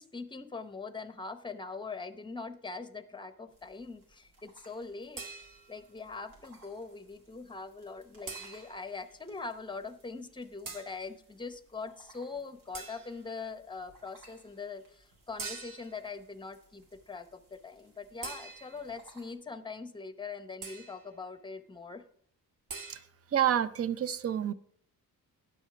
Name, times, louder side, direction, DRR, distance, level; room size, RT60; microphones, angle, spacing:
voice 1, 0.0-5.2 5.7-22.0, left 4 dB, 10° left, 11 dB, 0.7 m, -42 dB
sound 1, 3.5-19.3, right 2 dB, 90° right, 3.7 m, -62 dB
sound 2, 5.2-5.9 8.3-8.9 10.7-11.0 12.7-13.3 15.4-16.0 18.2-18.9 20.6-21.1 22.7-23.0, right 4 dB, 55° right, 1.5 m, -43 dB
voice 2, 23.3-24.5, right 10 dB, 40° right, 16 dB, 0.5 m, -28 dB
10.0 x 6.3 x 5.9 m, 0.63 s
cardioid pair, 110°, 38 cm